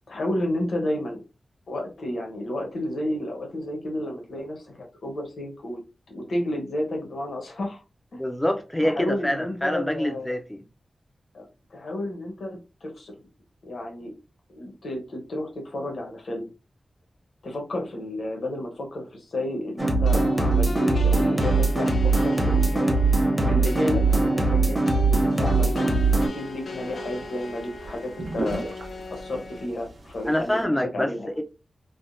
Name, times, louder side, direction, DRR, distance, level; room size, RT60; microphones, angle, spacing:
voice 1, 0.1-1.2 1.7-5.8 6.1-7.8 8.1-8.2 8.8-10.3 11.3-13.2 13.6-14.1 14.5-16.5 17.4-23.0 23.4-25.9 26.3-28.6 29.1-31.3, left 1 dB, 70° left, 0.9 m, -31 dB
voice 2, 8.2-10.6 30.3-31.1 31.4-31.5, left 1 dB, 10° left, 0.4 m, -25 dB
sound 1, 19.8-26.3, right 3 dB, 15° right, 0.8 m, -21 dB
sound 2, 20.1-29.7, left 3 dB, 85° left, 0.4 m, -37 dB
sound 3, 25.2-30.6, right 2 dB, 65° right, 0.6 m, -39 dB
3.5 x 2.1 x 2.5 m
wide cardioid pair, 125°, 0 cm